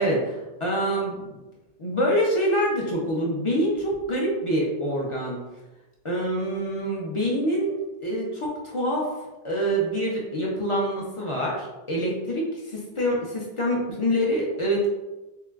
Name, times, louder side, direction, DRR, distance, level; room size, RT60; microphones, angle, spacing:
voice 1, 0.0-1.4 1.8-5.4 6.0-7.7 8.0-9.1 9.4-14.9, equal, 45° left, -3 dB, 0.4 m, -26 dB
3.7 x 2.2 x 2.3 m, 1.1 s
omnidirectional pair, 1.0 m